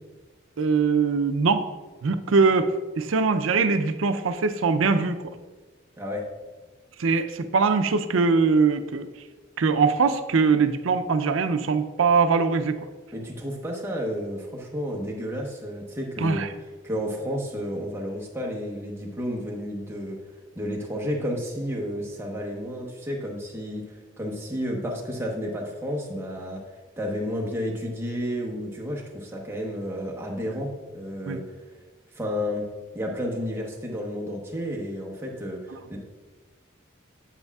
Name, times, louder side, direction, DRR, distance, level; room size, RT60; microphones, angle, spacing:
voice 1, 0.6-1.7 2.0-5.1 7.0-9.1 9.6-12.8 16.2-16.5 30.5-30.6 31.3-31.4, right 4 dB, 85° right, 10 dB, 0.5 m, -22 dB
voice 2, 13.1-16.4 16.8-20.2 20.5-23.8 24.2-26.6 27.0-31.4 32.1-32.7 32.9-36.0, equal, 10° right, -2 dB, 1.0 m, -31 dB
8.2 x 7.9 x 2.3 m, 1.3 s
head